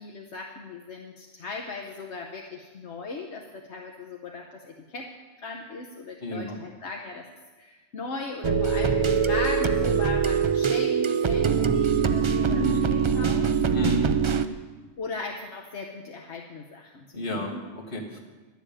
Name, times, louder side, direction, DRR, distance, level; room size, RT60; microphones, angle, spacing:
voice 1, 0.0-7.3 7.6-13.6 15.0-17.6, left 3 dB, 75° left, 1 dB, 1.2 m, -38 dB
voice 2, 6.2-6.6 12.4-12.8 13.7-14.1 17.1-18.2, left 1 dB, 50° left, -2 dB, 2.2 m, -31 dB
sound 1, 8.4-14.5, right 6 dB, 50° right, 0.3 m, -23 dB
11.5 x 7.4 x 8.6 m, 1.3 s
omnidirectional pair, 1.2 m